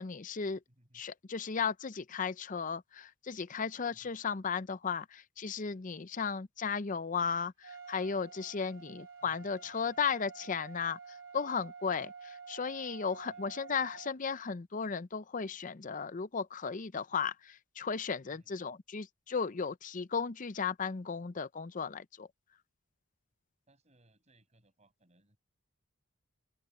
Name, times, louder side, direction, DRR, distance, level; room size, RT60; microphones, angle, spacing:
voice 1, 0.0-0.6 0.9-22.3, left 5 dB, 40° left, 0.6 m, -35 dB
voice 2, 0.7-1.0 3.9-4.2 9.2-10.0 13.1-13.8 18.3-18.5 23.7-25.4, right 1 dB, 30° right, 7.3 m, -68 dB
Trumpet, 7.6-14.2, right 5 dB, 65° right, 4.5 m, -50 dB
open air
head